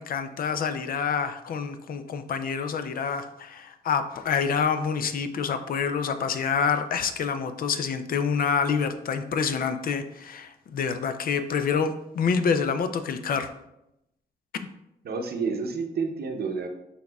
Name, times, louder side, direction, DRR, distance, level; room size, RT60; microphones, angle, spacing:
voice 1, 0.0-13.5, left 6 dB, 60° left, 10 dB, 0.4 m, -27 dB
voice 2, 15.0-16.7, right 4 dB, 65° right, 4 dB, 0.7 m, -29 dB
6.0 x 3.6 x 2.3 m, 0.85 s
cardioid pair, 80°, 17 cm